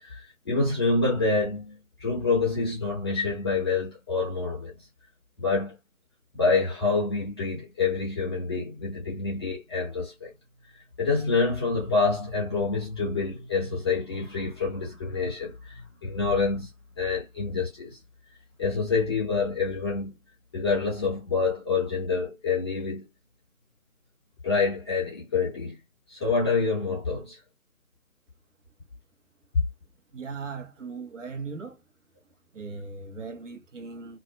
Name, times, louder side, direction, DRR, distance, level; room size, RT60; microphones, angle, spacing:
voice 1, 0.0-4.7 5.4-5.8 6.3-10.3 11.0-16.7 17.0-18.0 18.6-20.2 20.5-23.1 24.4-25.8 26.1-27.4, left 4 dB, 20° left, 0.7 m, -27 dB
voice 2, 30.1-31.8 32.5-34.2, right 4 dB, 55° right, 1.1 m, -38 dB
2.6 x 2.2 x 2.6 m
figure-of-eight pair, 140°, 43 cm